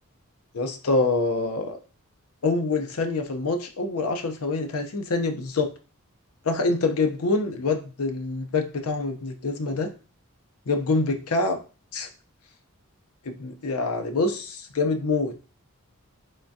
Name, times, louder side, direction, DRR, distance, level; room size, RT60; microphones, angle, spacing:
voice 1, 0.5-1.8 2.4-5.7 6.4-9.9 10.7-11.6 11.9-12.1 13.2-15.3, left 3 dB, 85° left, 6 dB, 0.6 m, -25 dB
3.7 x 3.4 x 2.6 m, 0.35 s
head